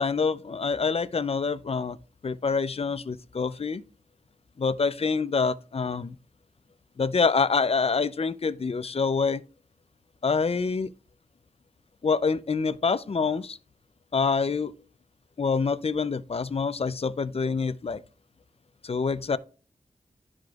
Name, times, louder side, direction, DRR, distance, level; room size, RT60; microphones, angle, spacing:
voice 1, 0.0-2.0 2.2-3.8 4.6-6.2 7.0-9.4 10.2-10.9 12.0-13.6 14.1-14.7 15.4-18.0 18.8-19.4, left 5 dB, 45° left, 0.4 m, -26 dB
14.5 x 5.0 x 2.4 m
wide cardioid pair, 95°, 14 cm